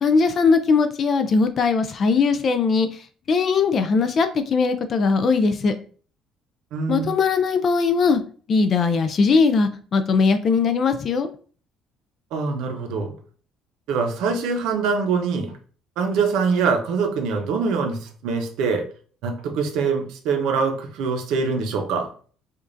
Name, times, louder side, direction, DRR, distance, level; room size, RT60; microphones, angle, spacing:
voice 1, 0.0-5.7 6.9-8.2 8.5-11.3, left 4 dB, 35° left, 9 dB, 0.3 m, -20 dB
voice 2, 6.7-7.1 12.3-13.1 13.9-15.5 16.0-18.8 19.2-22.1, right 5 dB, 70° right, 4 dB, 0.8 m, -24 dB
5.0 x 2.4 x 2.5 m, 0.42 s
cardioid pair, 165°, 0 cm